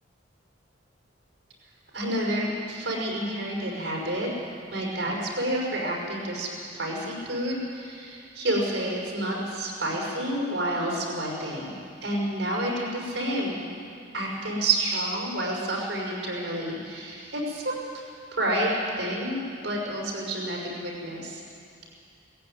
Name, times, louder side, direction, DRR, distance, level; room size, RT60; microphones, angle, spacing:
voice 1, 1.9-4.3 4.7-11.8 12.0-13.6 14.1-18.0 18.3-19.4 19.6-21.4, right 1 dB, 70° right, -3 dB, 5.9 m, -29 dB
18.5 x 15.5 x 9.6 m, 2.4 s
head